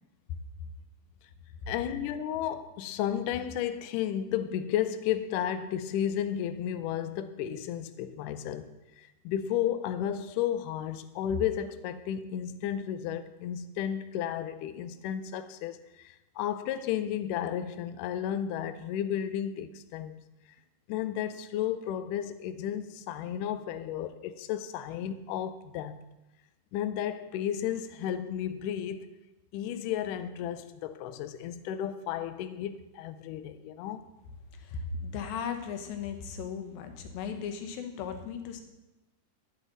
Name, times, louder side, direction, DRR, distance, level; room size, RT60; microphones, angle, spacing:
voice 1, 1.7-8.7 9.0-20.2 20.9-26.0 26.7-29.1 29.5-34.0, left 10 dB, 90° left, 1.8 m, -33 dB
voice 2, 34.6-38.6, left 6 dB, 75° left, 2.7 m, -37 dB
11.5 x 9.5 x 4.0 m
omnidirectional pair, 4.5 m